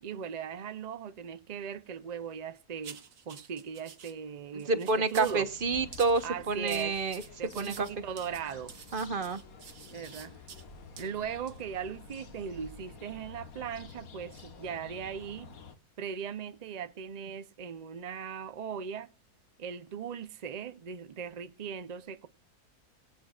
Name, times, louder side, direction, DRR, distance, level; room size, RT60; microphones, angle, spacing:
voice 1, 0.0-5.5 6.2-7.0 7.4-8.7 9.9-10.4 11.0-15.5 16.0-19.1 19.6-22.3, right 7 dB, 85° right, 0.3 m, -39 dB
sound 1, 2.8-4.1 4.6-5.4 5.9-10.6 11.0-11.1 11.5-11.6, right 7 dB, 60° right, 1.6 m, -49 dB
voice 2, 4.5-7.2 7.6-7.9 8.9-9.4, right 3 dB, 40° right, 1.1 m, -29 dB
sound 2, 5.1-15.8, left 4 dB, 65° left, 1.6 m, -50 dB
22.5 x 8.5 x 2.4 m
omnidirectional pair, 1.6 m